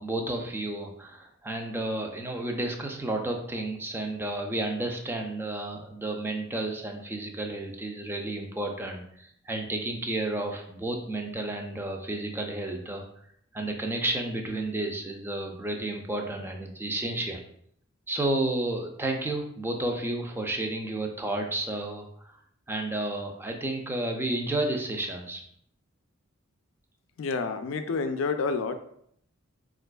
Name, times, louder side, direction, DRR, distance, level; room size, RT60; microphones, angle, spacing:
voice 1, 0.0-13.0 13.5-17.4 18.1-22.4 22.7-25.4, right 2 dB, 10° right, 2 dB, 0.4 m, -31 dB
voice 2, 27.2-28.8, left 4 dB, 70° left, 8 dB, 0.4 m, -29 dB
4.6 x 2.4 x 2.2 m, 0.68 s
head